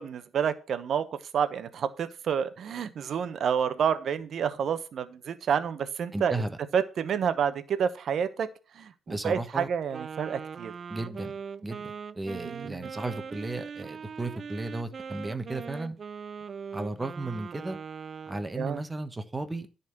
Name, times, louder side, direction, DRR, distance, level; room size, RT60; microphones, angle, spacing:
voice 1, 0.0-6.3 6.7-8.5 8.7-10.7 12.3-12.9 18.6-18.8, right 7 dB, 60° right, 12 dB, 1.0 m, -29 dB
voice 2, 6.1-6.6 9.1-9.7 10.9-11.3 11.6-16.0 16.7-17.8 18.3-19.7, right 2 dB, 20° right, 9 dB, 1.3 m, -34 dB
Wind instrument woodwind instrument, 9.9-18.5, right 6 dB, 45° right, 0.5 m, -40 dB
11.0 x 4.2 x 7.8 m, 0.35 s
cardioid pair, 90°, 0 cm